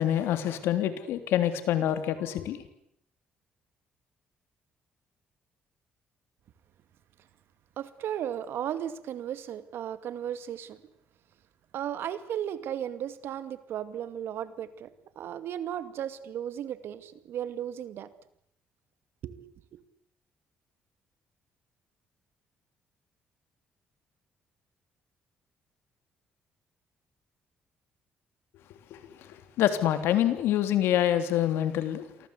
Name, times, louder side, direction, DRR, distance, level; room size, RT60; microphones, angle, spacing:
voice 1, 0.0-2.6 28.9-29.0 29.3-32.0, left 11 dB, 80° left, 3.2 m, -26 dB
voice 2, 7.8-10.8 11.7-14.9 15.2-18.1 19.2-19.5, right 10 dB, 70° right, 2.3 m, -35 dB
29.5 x 24.0 x 8.3 m
supercardioid pair, 70°, 4 cm